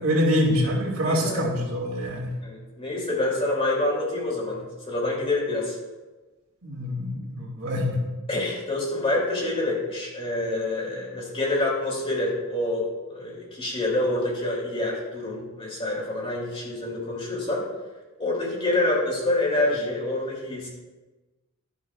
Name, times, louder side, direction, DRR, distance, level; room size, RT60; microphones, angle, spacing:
voice 1, 0.0-2.3 6.6-8.1, equal, 70° right, -3 dB, 2.8 m, -25 dB
voice 2, 1.0-1.5 2.4-5.8 8.3-17.6 18.2-20.7, left 2 dB, 25° left, -3 dB, 2.9 m, -27 dB
12.0 x 11.0 x 2.4 m, 1.2 s
head